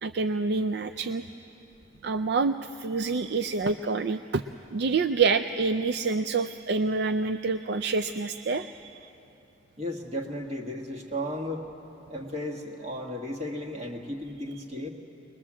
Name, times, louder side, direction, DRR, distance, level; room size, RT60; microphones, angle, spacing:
voice 1, 0.0-1.2 2.0-4.4 4.7-9.1, right 4 dB, 60° right, 10 dB, 0.4 m, -27 dB
voice 2, 9.8-11.7 12.1-14.9, equal, 35° right, 2 dB, 1.7 m, -34 dB
22.0 x 21.0 x 7.5 m, 2.8 s
head